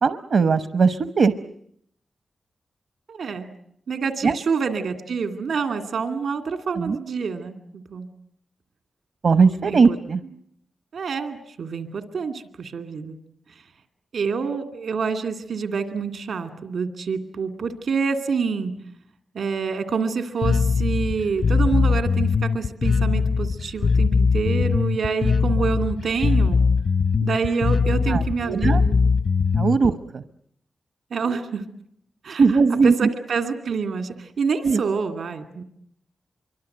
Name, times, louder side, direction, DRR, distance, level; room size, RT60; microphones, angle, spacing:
voice 1, 0.0-1.3 4.2-4.3 6.8-7.0 9.2-10.2 28.1-28.8 29.5-30.2 31.2-31.4 32.4-32.9 34.6-34.8, right 5 dB, 65° right, 12 dB, 1.0 m, -19 dB
voice 2, 3.1-3.5 3.9-8.1 9.6-10.0 10.9-13.2 14.1-18.7 19.3-26.6 27.2-29.1 29.8-30.0 31.1-31.6 32.2-32.4 32.7-35.6, right 5 dB, 85° right, 8 dB, 2.4 m, -27 dB
Bass guitar, 20.4-29.9, left 5 dB, 60° left, 1.0 m, -21 dB
26.0 x 24.0 x 7.9 m, 0.70 s
wide cardioid pair, 140°, 0 cm